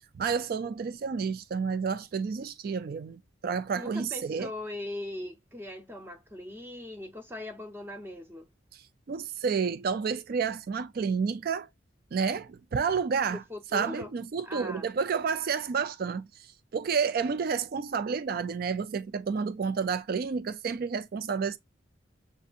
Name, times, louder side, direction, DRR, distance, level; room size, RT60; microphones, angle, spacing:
voice 1, 0.2-4.5 8.7-8.8 9.1-11.7 12.1-13.4 13.7-21.6, right 5 dB, 50° right, 0.3 m, -30 dB
voice 2, 3.7-8.5 13.3-14.1 14.4-14.9, left 1 dB, 10° right, 0.7 m, -40 dB
6.9 x 2.7 x 2.4 m
head